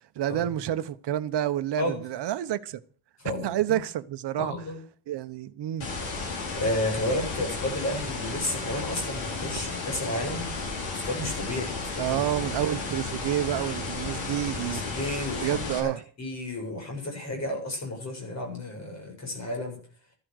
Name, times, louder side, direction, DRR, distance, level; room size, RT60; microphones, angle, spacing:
voice 1, 0.1-2.8 3.4-4.5 5.1-5.9 12.0-14.8 15.4-16.0, right 12 dB, 60° right, 1.2 m, -29 dB
voice 2, 3.2-3.8 4.4-4.8 6.6-10.5 10.9-12.5 14.7-15.9 16.2-19.8, left 1 dB, 35° left, 7.4 m, -32 dB
sound 1, 5.8-15.8, left 3 dB, 75° left, 5.8 m, -33 dB
14.0 x 11.5 x 6.6 m
cardioid pair, 175°, 47 cm